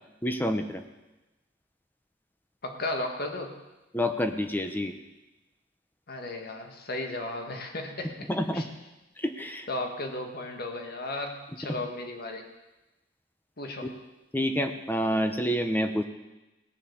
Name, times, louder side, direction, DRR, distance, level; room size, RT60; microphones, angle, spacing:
voice 1, 0.2-0.8 3.9-4.9 8.3-8.6 9.2-9.7 14.3-16.0, equal, 10° left, 7 dB, 0.9 m, -28 dB
voice 2, 2.6-3.6 6.1-8.2 8.5-8.7 9.7-12.4 13.6-13.9, left 2 dB, 55° left, 4 dB, 1.9 m, -35 dB
18.5 x 7.4 x 7.2 m, 1.0 s
head